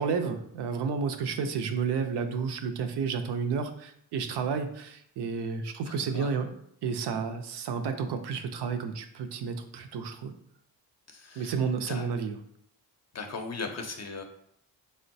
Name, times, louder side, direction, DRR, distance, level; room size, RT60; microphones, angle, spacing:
voice 1, 0.0-6.5 6.8-10.3 11.4-12.4, right 5 dB, 70° right, 7 dB, 0.5 m, -31 dB
voice 2, 5.9-6.3 11.1-11.5 11.9-12.1 13.1-14.2, left 4 dB, 40° left, 4 dB, 0.6 m, -38 dB
3.6 x 2.1 x 2.6 m, 0.71 s
cardioid pair, 55°, 42 cm